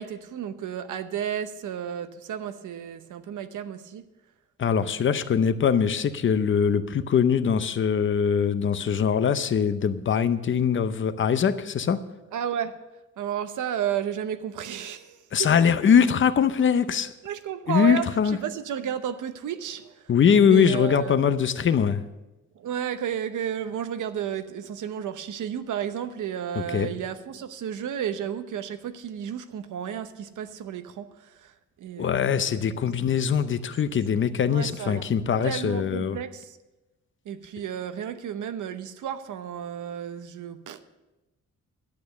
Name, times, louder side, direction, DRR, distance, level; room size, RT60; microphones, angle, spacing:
voice 1, 0.0-4.0 4.7-5.2 12.3-12.7 13.2-15.5 17.2-20.1 20.4-21.2 22.6-32.7 34.5-35.1 35.4-36.6 37.3-41.0, right 9 dB, 90° right, 0.9 m, -33 dB
voice 2, 4.6-12.0 15.3-17.1 17.7-18.4 20.1-22.0 26.7-26.9 32.0-36.2, left 7 dB, 40° left, 0.7 m, -22 dB
12.0 x 8.6 x 6.8 m
wide cardioid pair, 160°, 30 cm